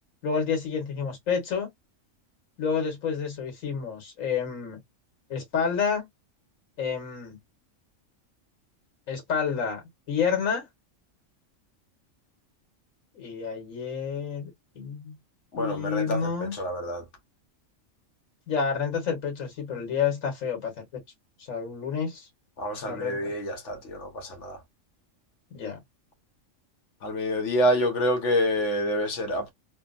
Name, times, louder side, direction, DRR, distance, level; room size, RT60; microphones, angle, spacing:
voice 1, 0.2-1.7 2.6-4.8 5.3-6.1 6.8-7.4 9.1-10.7 13.1-14.5 14.7-15.2 15.5-16.6 18.5-20.9 21.4-22.3 22.8-23.3 25.5-25.8, left 6 dB, 80° left, 1.6 m, -29 dB
voice 2, 15.5-16.2 16.6-17.0 22.6-24.6 27.0-29.5, equal, 65° left, 1.2 m, -27 dB
3.4 x 2.0 x 2.4 m
omnidirectional pair, 1.4 m